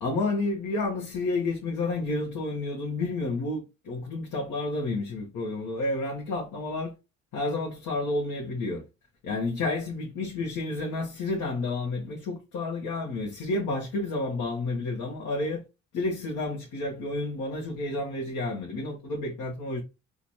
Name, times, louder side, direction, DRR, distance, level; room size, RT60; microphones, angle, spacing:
voice 1, 0.0-6.9 7.3-8.8 9.2-15.6 15.9-19.8, left 2 dB, 80° left, 1.1 m, -30 dB
3.9 x 2.5 x 2.9 m
cardioid pair, 90°, 30 cm